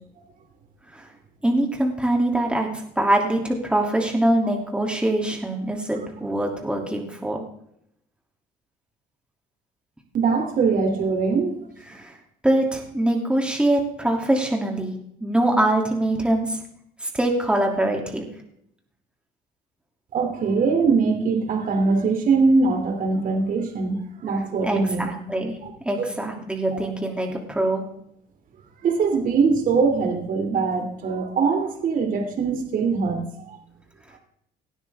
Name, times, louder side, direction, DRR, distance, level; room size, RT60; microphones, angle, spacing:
voice 1, 1.4-7.4 11.9-12.2 12.4-16.6 17.0-18.3 24.6-25.6 25.8-27.8, right 1 dB, 5° right, 1 dB, 2.8 m, -23 dB
voice 2, 10.1-11.7 20.1-25.1 25.6-25.7 26.0-26.1 26.7-26.9 28.8-33.6, right 4 dB, 55° right, 4 dB, 3.0 m, -22 dB
18.5 x 12.5 x 3.6 m, 0.72 s
cardioid pair, 110°, 17 cm